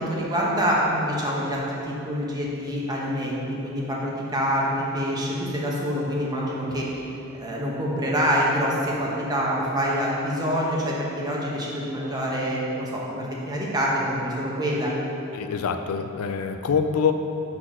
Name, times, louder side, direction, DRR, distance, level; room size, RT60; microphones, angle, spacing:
voice 1, 0.0-7.0 7.3-14.9, equal, 20° right, -4 dB, 1.0 m, -26 dB
voice 2, 15.3-17.1, left 6 dB, 80° left, 7 dB, 0.4 m, -25 dB
6.1 x 4.2 x 6.1 m, 2.8 s
head